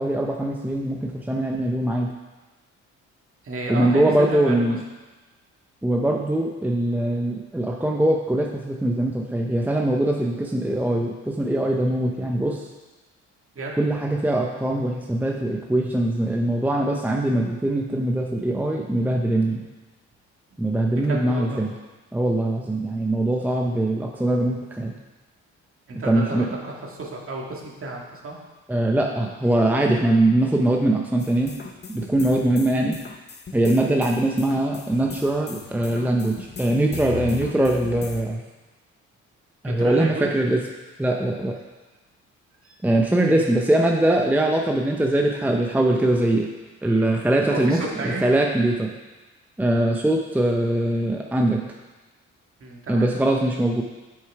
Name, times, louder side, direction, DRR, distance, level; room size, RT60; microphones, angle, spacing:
voice 1, 0.0-2.1 3.7-4.8 5.8-12.7 13.8-19.7 20.6-21.7 22.1-25.0 26.0-26.5 28.7-31.6 31.9-33.0 33.5-38.4 39.6-40.6 41.0-41.6 42.8-46.5 46.8-48.9 49.6-51.6 52.9-53.8, right 1 dB, 5° right, 1 dB, 0.7 m, -22 dB
voice 2, 3.4-4.8 11.9-12.0 13.6-13.8 21.0-21.6 25.9-28.4 32.2-32.5 39.6-40.3 42.6-42.8 43.2-43.5 46.9-47.1 47.5-48.3 52.6-53.4, right 2 dB, 45° right, -1 dB, 2.0 m, -32 dB
sound 1, 31.2-38.2, left 6 dB, 35° left, 0.9 m, -38 dB
8.2 x 6.5 x 4.7 m, 1.2 s
cardioid pair, 90°, 30 cm